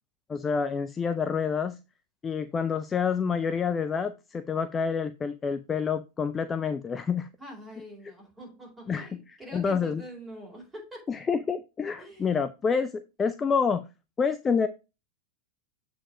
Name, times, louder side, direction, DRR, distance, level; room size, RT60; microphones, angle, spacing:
voice 1, 0.3-1.8 2.2-7.3 8.9-10.0 11.1-13.8 14.2-14.7, left 6 dB, 20° left, 11 dB, 0.4 m, -28 dB
voice 2, 7.4-11.1 12.0-12.4, equal, 10° right, -2 dB, 4.3 m, -45 dB
7.5 x 4.4 x 4.9 m, 0.29 s
figure-of-eight pair, 90°, 0 cm